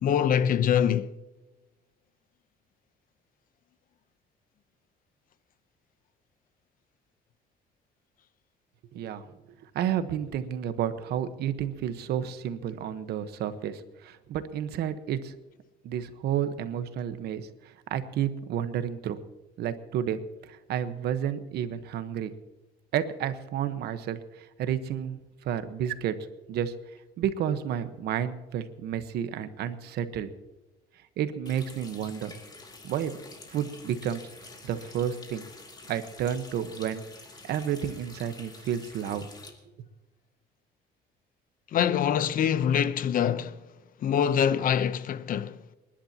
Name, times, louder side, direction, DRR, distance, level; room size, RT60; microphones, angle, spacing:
voice 1, 0.0-1.1 41.7-43.6 44.0-45.6, left 9 dB, 55° left, 0.8 m, -24 dB
voice 2, 8.9-9.4 9.7-15.3 15.8-19.2 19.6-22.3 22.9-26.1 26.5-26.7 27.2-30.3 31.2-32.4 32.8-33.2 33.5-34.2 34.6-35.5 35.9-37.0 37.4-39.3, right 9 dB, 75° right, 1.2 m, -31 dB
Water tap faucet, 31.4-39.5, left 3 dB, 25° left, 2.8 m, -48 dB
28.5 x 11.5 x 2.9 m
cardioid pair, 110°, 17 cm